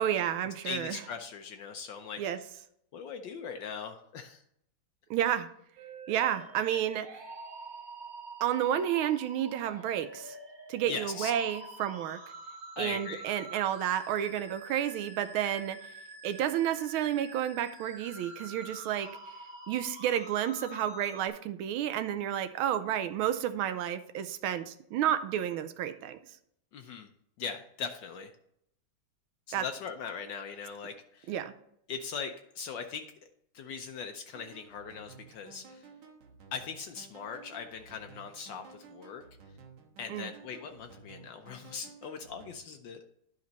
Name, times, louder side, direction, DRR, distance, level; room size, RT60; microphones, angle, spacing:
voice 1, 0.0-1.0 2.2-2.4 5.1-5.5 6.1-7.2 8.4-10.4 10.7-12.2 12.8-15.9 16.2-19.1 19.7-26.2 29.5-29.6 31.3-31.5 40.1-40.3, right 10 dB, 90° right, 11 dB, 1.5 m, -31 dB
voice 2, 0.6-2.2 2.9-4.4 10.9-11.3 12.8-13.3 26.7-27.1 27.4-28.3 29.5-31.3 31.9-33.0 33.5-35.8 36.5-39.2 40.0-43.1, left 6 dB, 70° left, 6 dB, 1.2 m, -40 dB
sound 1, 5.8-21.3, right 2 dB, 30° right, 1.1 m, -47 dB
sound 2, 34.3-42.6, right 4 dB, 65° right, 1.7 m, -54 dB
10.5 x 5.2 x 4.0 m, 0.73 s
omnidirectional pair, 2.3 m